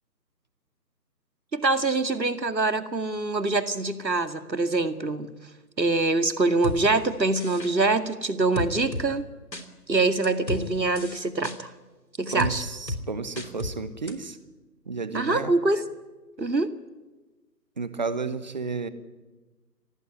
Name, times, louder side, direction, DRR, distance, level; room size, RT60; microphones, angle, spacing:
voice 1, 1.5-5.3 5.8-9.3 9.9-11.7 12.2-12.6 15.1-15.8 16.4-16.7, right 3 dB, 85° right, 9 dB, 2.3 m, -24 dB
sound 1, 6.6-6.8 7.4-7.7 8.6-9.1 9.5-9.6 10.2-10.6 11.0-11.6 12.4-12.5 12.9-13.0 13.4-13.7 14.1-14.2, left 2 dB, 90° left, 3.4 m, -32 dB
voice 2, 12.3-14.4 14.9-15.5 17.8-18.9, right 4 dB, 25° right, 14 dB, 1.1 m, -32 dB
25.0 x 18.0 x 9.9 m, 1.2 s
figure-of-eight pair, 155°, 49 cm